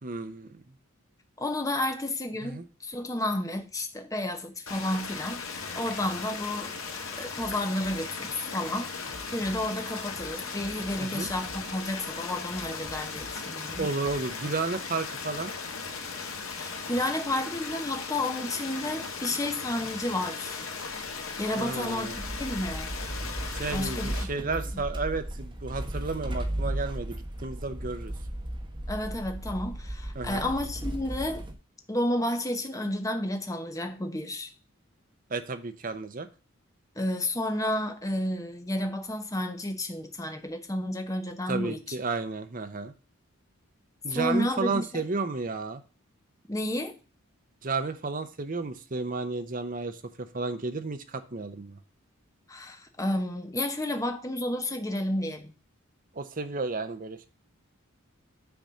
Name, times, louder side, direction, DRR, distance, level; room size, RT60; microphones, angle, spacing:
voice 1, 0.0-0.6 2.4-2.6 11.0-11.3 13.8-15.5 21.5-22.2 23.5-28.1 30.2-30.5 35.3-36.3 41.5-42.9 44.0-45.8 47.6-51.8 56.1-57.3, right 3 dB, 40° right, 0.8 m, -32 dB
voice 2, 1.4-6.7 7.2-8.9 9.3-13.9 16.5-20.6 21.4-22.9 23.7-24.8 28.9-31.4 31.9-34.5 37.0-41.8 44.1-45.0 46.5-46.9 52.5-55.5, left 1 dB, 15° left, 0.9 m, -31 dB
sound 1, 4.7-24.2, left 5 dB, 85° left, 1.5 m, -37 dB
sound 2, 7.4-8.5 8.9-12.0 12.3-14.2, right 1 dB, 60° right, 1.1 m, -49 dB
sound 3, 22.1-31.5, right 1 dB, 25° right, 1.3 m, -35 dB
6.9 x 4.2 x 6.3 m
head